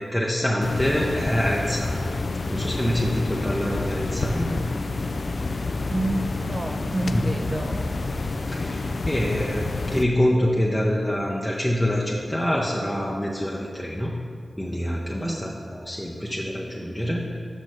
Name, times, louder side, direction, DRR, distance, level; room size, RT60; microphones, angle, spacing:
voice 1, 0.0-2.1 2.5-4.5 7.1-7.2 8.5-14.1 14.6-17.3, equal, 10° left, -3 dB, 0.8 m, -25 dB
sound 1, 0.6-10.0, left 3 dB, 60° left, 0.4 m, -28 dB
voice 2, 5.9-7.8 15.2-15.5, right 1 dB, 30° right, 9 dB, 0.4 m, -28 dB
6.1 x 5.4 x 4.9 m, 2.3 s
cardioid pair, 40°, 0 cm